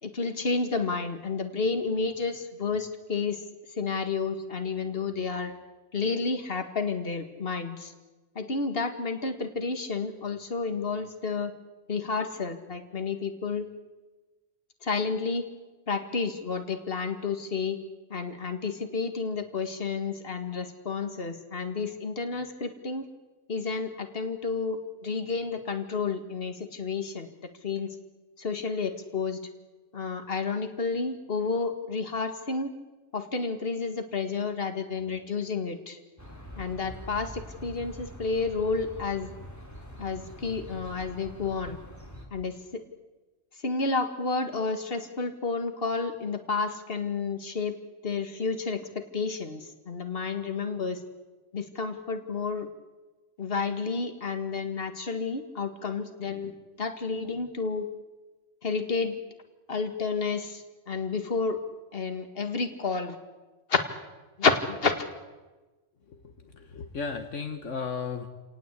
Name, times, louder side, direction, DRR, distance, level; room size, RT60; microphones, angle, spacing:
voice 1, 0.0-5.5 5.9-7.9 8.4-11.5 11.9-13.7 14.8-15.5 15.9-17.8 18.1-23.1 23.5-27.3 27.6-28.0 28.4-29.4 29.9-32.7 33.1-36.0 36.6-39.3 40.0-41.8 42.3-42.8 43.6-47.8 48.0-51.0 51.5-52.7 53.4-56.5 56.8-57.9 58.6-59.2 59.7-61.6 61.9-63.2 63.7-63.8 64.4-65.1, left 4 dB, 50° left, 6 dB, 2.1 m, -30 dB
sound 1, 36.2-42.3, equal, 15° left, 3.9 m, -44 dB
voice 2, 66.5-68.3, left 5 dB, 75° left, 6 dB, 1.7 m, -34 dB
29.0 x 18.5 x 8.4 m, 1.2 s
omnidirectional pair, 1.3 m